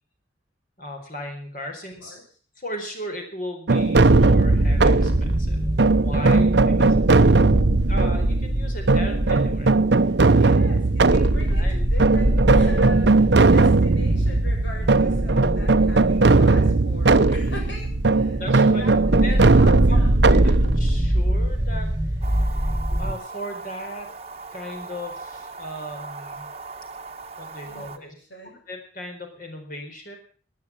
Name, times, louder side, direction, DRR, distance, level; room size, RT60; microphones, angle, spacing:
voice 1, 0.8-2.2 2.6-5.7 6.0-7.0 7.9-9.8 11.5-11.8 18.3-18.8 19.2-19.4 19.9-22.7 23.0-24.1 24.5-26.5 27.4-28.1 28.7-30.2, equal, 45° left, 4 dB, 4.3 m, -37 dB
sound 1, 3.7-22.4, right 3 dB, 65° right, 0.7 m, -19 dB
sound 2, 3.9-23.1, equal, 15° right, 1.4 m, -24 dB
voice 2, 10.3-20.7 27.6-28.6, left 1 dB, 75° left, 2 dB, 7.7 m, -41 dB
sound 3, 22.2-28.0, right 4 dB, 35° right, 1.2 m, -39 dB
19.0 x 10.0 x 7.3 m, 0.43 s
head